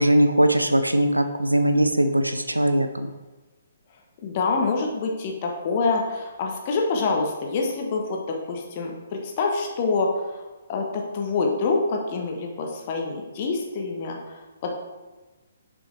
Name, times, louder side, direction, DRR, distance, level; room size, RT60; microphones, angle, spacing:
voice 1, 0.0-3.1, right 1 dB, 85° right, 8 dB, 0.4 m, -20 dB
voice 2, 4.2-14.7, left 3 dB, 35° left, 1 dB, 1.0 m, -26 dB
6.6 x 5.3 x 3.2 m, 1.2 s
figure-of-eight pair, 130°, 0 cm